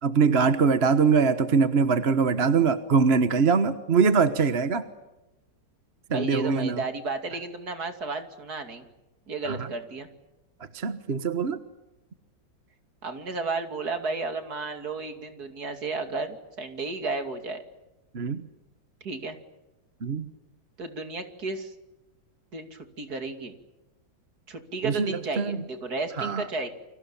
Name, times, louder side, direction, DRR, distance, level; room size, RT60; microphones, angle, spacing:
voice 1, 0.0-4.8 6.1-6.8 9.5-9.7 10.7-11.6 18.1-18.4 20.0-20.3 24.8-25.6 26.2-26.4, right 5 dB, 40° right, 10 dB, 1.4 m, -23 dB
voice 2, 6.1-8.9 9.3-10.1 13.0-17.6 19.0-19.4 20.8-21.7 22.5-23.5 24.5-26.7, right 3 dB, 55° right, 7 dB, 3.1 m, -33 dB
29.5 x 25.0 x 7.3 m, 0.98 s
omnidirectional pair, 2.0 m